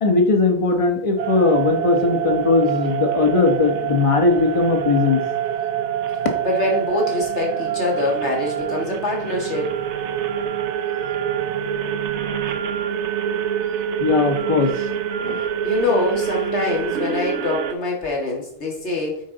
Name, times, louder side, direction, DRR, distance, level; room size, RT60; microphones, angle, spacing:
voice 1, 0.0-5.2 14.0-14.7 15.2-15.4, left 3 dB, 30° left, 5 dB, 1.0 m, -19 dB
sound 1, 1.2-17.7, right 9 dB, 90° right, 1.0 m, -25 dB
voice 2, 6.4-9.7 15.6-19.2, left 2 dB, 80° left, -2 dB, 2.3 m, -24 dB
9.6 x 4.4 x 3.9 m, 0.70 s
omnidirectional pair, 1.1 m